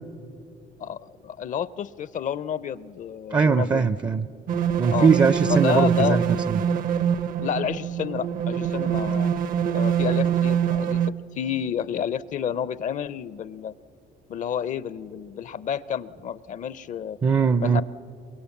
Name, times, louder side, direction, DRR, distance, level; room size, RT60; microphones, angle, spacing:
voice 1, 0.8-3.9 4.9-5.1 5.5-6.2 7.4-9.3 9.7-13.7 14.3-17.2 17.6-17.8, left 8 dB, 50° left, 18 dB, 0.6 m, -30 dB
voice 2, 3.3-4.3 4.8-6.2 6.5-6.6 17.2-17.8, right 5 dB, 25° right, 15 dB, 0.5 m, -20 dB
sound 1, 4.5-11.1, right 8 dB, 55° right, 0.7 m, -24 dB
24.0 x 22.0 x 7.2 m, 2.6 s
cardioid pair, 110°, 17 cm